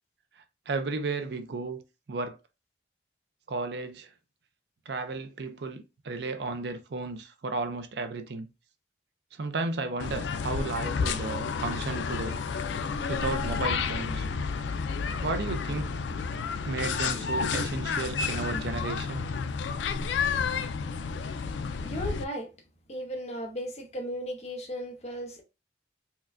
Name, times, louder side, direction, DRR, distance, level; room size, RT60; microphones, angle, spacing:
voice 1, 0.7-1.8 2.1-2.4 3.5-4.1 4.9-8.5 9.3-12.4 13.1-14.3 15.2-16.1 16.7-19.3, right 3 dB, 65° right, 0.5 m, -33 dB
sound 1, 10.0-22.2, left 5 dB, 85° left, 0.4 m, -31 dB
voice 2, 21.8-22.5 22.9-25.4, equal, 35° left, 0.8 m, -36 dB
4.4 x 2.2 x 2.5 m
head